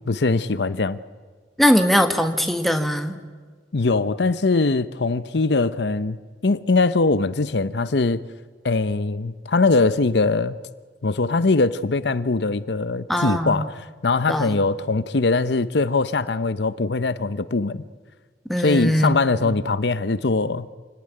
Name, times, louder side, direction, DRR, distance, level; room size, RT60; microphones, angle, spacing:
voice 1, 0.1-1.0 3.7-6.2 6.4-8.2 8.6-10.6 11.0-17.8 18.6-20.7, left 3 dB, 65° left, 0.7 m, -21 dB
voice 2, 1.6-3.1 13.1-13.7 14.3-14.6 18.5-19.1 19.4-19.5, equal, ahead, 1.7 m, -20 dB
28.0 x 18.5 x 9.9 m
head